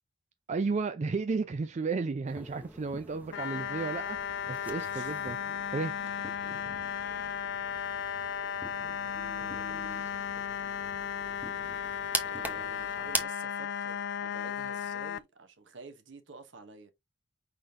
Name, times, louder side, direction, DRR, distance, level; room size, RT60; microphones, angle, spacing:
voice 1, 0.5-5.4 5.7-6.0, right 4 dB, 40° right, 0.4 m, -33 dB
sound 1, 2.3-13.2, right 2 dB, 10° right, 0.8 m, -42 dB
sound 2, 3.3-15.2, left 8 dB, 60° left, 0.3 m, -35 dB
voice 2, 4.7-5.1 9.1-10.1 12.2-16.9, right 3 dB, 70° right, 1.0 m, -49 dB
5.1 x 3.8 x 2.7 m
head